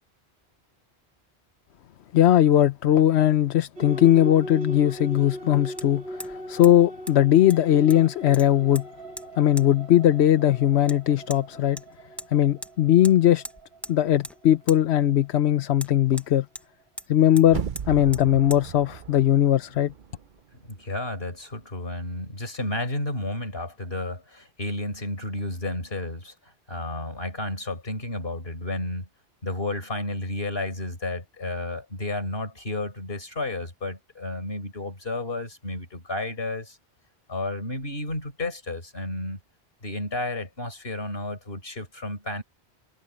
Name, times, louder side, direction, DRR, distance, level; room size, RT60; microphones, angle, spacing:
voice 1, 2.1-8.9 9.4-11.8 12.3-13.4 13.9-16.5 17.1-19.9, left 12 dB, 90° left, 1.0 m, -19 dB
sound 1, 3.8-15.7, right 1 dB, 80° right, 2.9 m, -39 dB
Hammer, 5.8-5.9 6.2-6.4 6.6-6.7 7.1-7.2 7.5-8.0 8.3-8.9 9.2-9.3 9.6-9.7 10.9-11.0 11.3-11.4 11.8-12.3 12.6-12.7 13.0-13.2 13.4-14.0 14.2-14.4 14.7-14.8 15.8-16.7 17.0-17.1 17.4-17.5 17.8-17.9 18.1-18.3 18.5-18.6, equal, ahead, 1.0 m, -39 dB
sound 2, 17.4-20.4 20.7-20.8, right 8 dB, 55° right, 0.8 m, -35 dB
voice 2, 20.7-26.3 26.7-29.1 29.4-36.8 37.3-39.4 39.8-42.4, left 2 dB, 65° left, 4.9 m, -32 dB
omnidirectional pair, 1.1 m